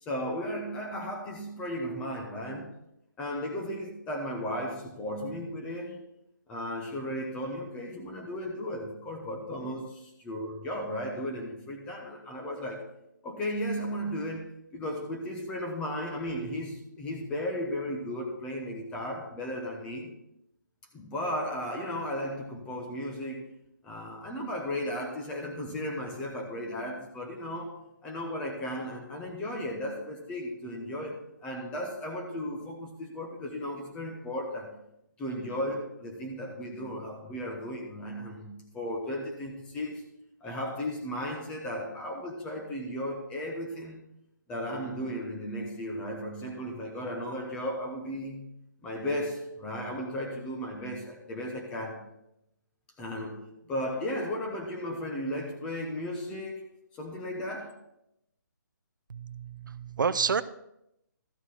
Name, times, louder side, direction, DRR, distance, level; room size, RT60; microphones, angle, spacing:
voice 1, 0.0-2.7 3.2-6.0 6.5-12.8 13.2-14.5 14.7-20.1 20.9-23.5 23.8-27.8 28.0-34.7 35.2-40.0 40.4-44.0 44.5-48.5 48.8-52.0 53.0-56.6 56.9-57.8, equal, 10° left, 1 dB, 1.0 m, -35 dB
voice 2, 59.1-60.4, right 5 dB, 70° right, 14 dB, 0.5 m, -29 dB
13.5 x 4.5 x 5.7 m, 0.83 s
hypercardioid pair, 165°, 11 cm